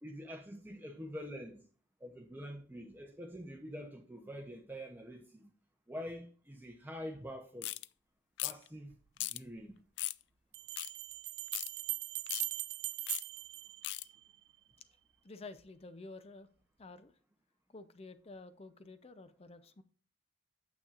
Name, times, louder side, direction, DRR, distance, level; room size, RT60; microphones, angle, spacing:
voice 1, 0.0-1.7 2.0-5.5 5.9-7.7 8.4-9.8, equal, 10° right, 0.7 m, -46 dB
sound 1, 7.6-7.9 8.4-8.7 9.2-9.4 10.0-10.2 10.8-10.9 11.5-11.7 12.3-12.5 13.1-13.2 13.8-14.0, left 17 dB, 80° left, 0.3 m, -37 dB
sound 2, 8.9-9.0 10.5-14.5, right 17 dB, 65° right, 0.5 m, -41 dB
voice 2, 15.2-16.5 16.8-17.1 17.7-19.8, left 3 dB, 35° left, 0.6 m, -50 dB
8.9 x 7.1 x 2.5 m
head